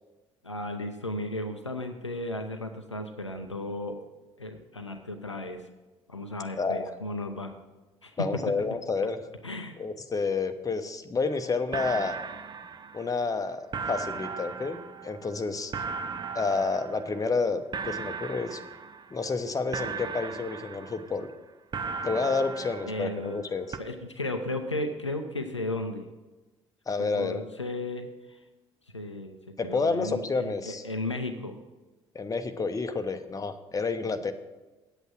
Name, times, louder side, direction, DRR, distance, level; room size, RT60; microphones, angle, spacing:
voice 1, 0.4-4.0 4.4-5.7 6.1-7.5 8.0-8.5 9.4-9.8 22.8-23.4 23.8-26.1 27.0-28.4 28.9-29.4 29.6-31.6, left 1 dB, 90° left, 5 dB, 0.6 m, -35 dB
voice 2, 6.6-6.9 8.2-9.2 9.8-12.1 12.9-15.7 16.3-18.6 19.1-21.3 22.0-23.8 26.9-27.4 29.6-30.8 32.1-34.3, left 4 dB, 25° left, 7 dB, 0.9 m, -29 dB
sound 1, 11.3-11.4 11.7-13.4 13.7-17.5 17.7-19.4 19.7-21.4 21.7-23.5 23.7-23.8, right 5 dB, 30° right, 0.6 m, -37 dB
8.8 x 8.1 x 6.1 m, 1.1 s
figure-of-eight pair, 50°, 15 cm